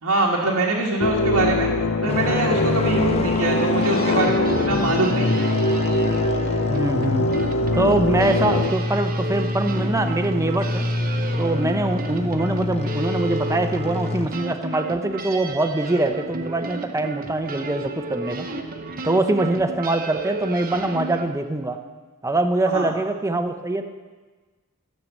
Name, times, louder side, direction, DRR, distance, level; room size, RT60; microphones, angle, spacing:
voice 1, 0.0-1.7 2.0-5.4 22.7-22.9, right 2 dB, 85° right, -3 dB, 1.5 m, -23 dB
sound 1, 1.0-8.7, left 2 dB, 70° left, 0.6 m, -23 dB
sound 2, 2.1-14.3, left 2 dB, 30° left, 0.7 m, -27 dB
sound 3, 3.8-21.3, right 3 dB, 40° right, 0.9 m, -33 dB
voice 2, 6.7-7.3 7.7-10.9 11.4-18.5 19.0-21.8 22.2-23.8, right 2 dB, 15° right, 7 dB, 0.6 m, -23 dB
14.0 x 6.6 x 7.3 m, 1.3 s
head